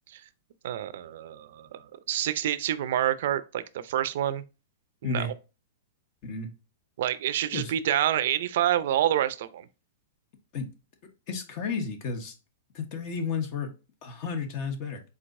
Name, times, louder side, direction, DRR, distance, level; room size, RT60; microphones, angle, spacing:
voice 1, 0.6-4.4 5.0-5.3 7.0-9.7, right 11 dB, 65° right, 0.5 m, -27 dB
voice 2, 11.3-12.3 12.7-13.7 14.0-15.0, left 4 dB, 45° left, 1.1 m, -32 dB
4.6 x 3.9 x 2.6 m
hypercardioid pair, 145°, 0 cm